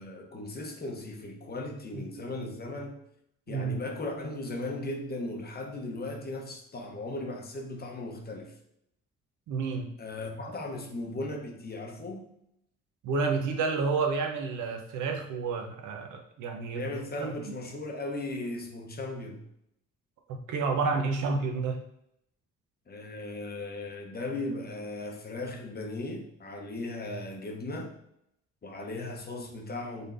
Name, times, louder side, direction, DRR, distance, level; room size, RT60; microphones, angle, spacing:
voice 1, 0.0-3.0 3.5-8.5 10.0-12.3 16.7-19.4 22.9-27.9 28.6-30.1, left 2 dB, 30° left, 2 dB, 0.8 m, -37 dB
voice 2, 3.5-3.8 9.5-9.9 13.0-16.9 17.2-17.3 20.3-21.8, right 4 dB, 80° right, 4 dB, 0.8 m, -30 dB
4.0 x 3.4 x 2.5 m, 0.76 s
cardioid pair, 90°, 30 cm